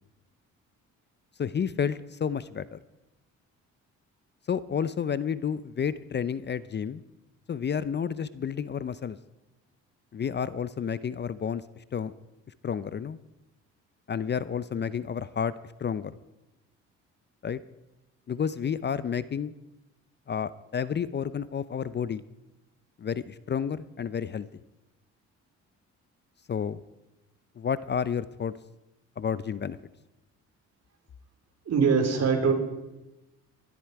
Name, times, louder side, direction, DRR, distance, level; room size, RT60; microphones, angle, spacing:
voice 1, 1.4-2.8 4.5-7.0 7.5-9.2 10.1-11.6 11.9-12.1 12.6-13.2 14.1-15.5 15.8-16.2 17.4-17.6 18.3-19.5 20.3-22.2 23.0-24.5 26.5-26.8 27.6-28.5 29.2-29.8, left 7 dB, 35° left, 16 dB, 0.6 m, -30 dB
voice 2, 31.7-32.5, right 5 dB, 55° right, 3 dB, 3.9 m, -22 dB
21.0 x 12.5 x 4.7 m, 0.99 s
cardioid pair, 90°, 30 cm